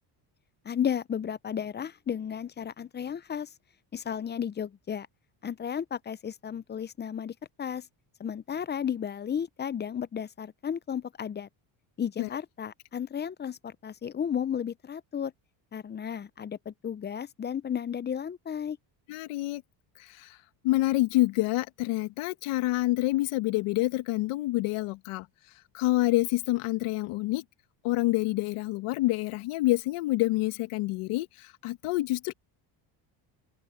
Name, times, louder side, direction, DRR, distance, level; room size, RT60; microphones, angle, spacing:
voice 1, 0.6-3.5 3.9-5.1 5.4-7.8 8.2-11.5 12.0-15.3 15.7-18.8, left 8 dB, 20° left, 0.4 m, -33 dB
voice 2, 19.1-19.6 20.2-20.3 20.6-25.2 25.7-27.4 27.8-32.3, left 18 dB, 85° left, 1.5 m, -27 dB
open air
cardioid pair, 105°, 50 cm